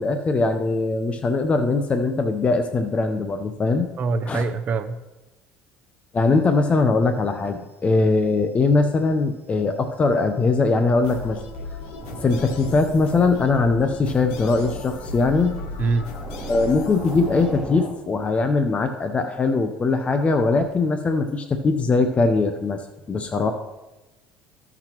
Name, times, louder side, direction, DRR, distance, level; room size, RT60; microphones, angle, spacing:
voice 1, 0.0-3.9 4.3-4.4 6.1-11.4 12.2-15.6 16.5-22.8 23.1-23.5, left 3 dB, 30° left, 7 dB, 0.7 m, -21 dB
voice 2, 4.0-5.0 15.8-16.1, right 4 dB, 40° right, 7 dB, 0.6 m, -24 dB
sound 1, 11.0-17.6, left 2 dB, 80° left, 1.0 m, -36 dB
sound 2, 12.0-17.9, right 1 dB, 10° right, 3.4 m, -38 dB
14.5 x 6.0 x 3.0 m, 1.1 s
supercardioid pair, 90°, 4 cm